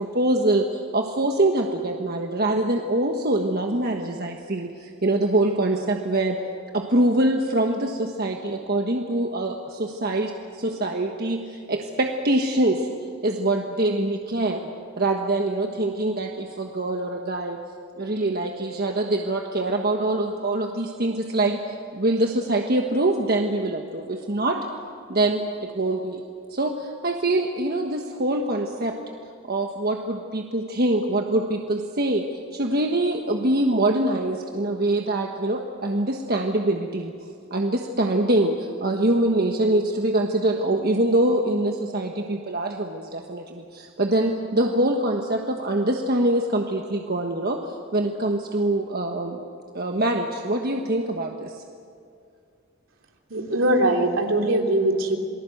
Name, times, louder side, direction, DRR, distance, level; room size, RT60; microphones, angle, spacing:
voice 1, 0.0-6.4 6.7-12.9 13.2-14.7 15.0-17.6 18.0-21.6 21.9-24.7 25.1-26.2 26.5-28.9 29.5-32.2 32.5-37.1 37.5-49.4 49.7-51.6, right 1 dB, 50° right, 2 dB, 1.4 m, -24 dB
voice 2, 53.3-55.2, right 1 dB, 75° right, 2 dB, 3.1 m, -21 dB
28.0 x 19.5 x 7.9 m, 2.4 s
head